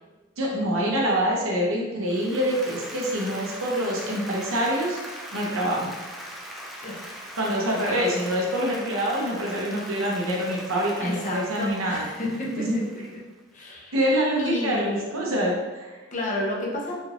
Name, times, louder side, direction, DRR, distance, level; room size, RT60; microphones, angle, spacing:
voice 1, 0.4-5.9 7.4-12.1 12.6-12.8 13.9-16.0, equal, 85° right, -2 dB, 0.9 m, -26 dB
Applause, 2.1-13.4, equal, ahead, 0.4 m, -40 dB
voice 2, 6.8-7.1 7.7-8.1 11.0-13.0 13.5-14.0 14.4-15.1 16.1-17.0, left 1 dB, 40° left, -3 dB, 0.8 m, -31 dB
4.2 x 3.2 x 2.5 m, 1.2 s
head